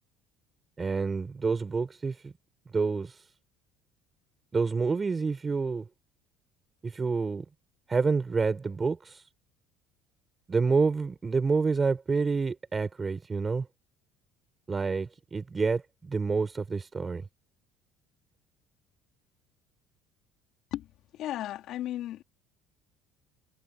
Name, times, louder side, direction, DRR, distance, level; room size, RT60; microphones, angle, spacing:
voice 1, 0.8-2.3 2.7-3.2 4.5-5.9 6.8-7.4 7.9-9.2 10.5-13.7 14.7-17.2, right 4 dB, 25° right, 5.9 m, -28 dB
voice 2, 21.1-22.2, left 13 dB, 65° left, 3.7 m, -34 dB
cardioid pair, 105°, 0 cm